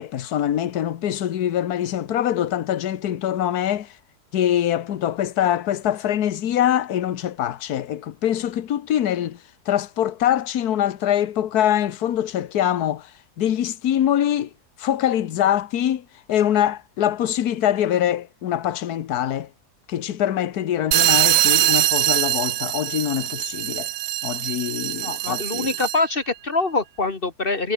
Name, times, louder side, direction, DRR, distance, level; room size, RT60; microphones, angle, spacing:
voice 1, 0.0-3.9 4.3-9.4 9.7-13.1 13.4-14.5 14.8-16.0 16.3-19.5 19.9-23.9 24.2-25.7, left 11 dB, 75° left, 1.5 m, -23 dB
sound 1, 20.9-26.1, right 14 dB, 70° right, 1.0 m, -22 dB
voice 2, 25.0-27.7, left 3 dB, 35° left, 1.8 m, -24 dB
omnidirectional pair, 1.7 m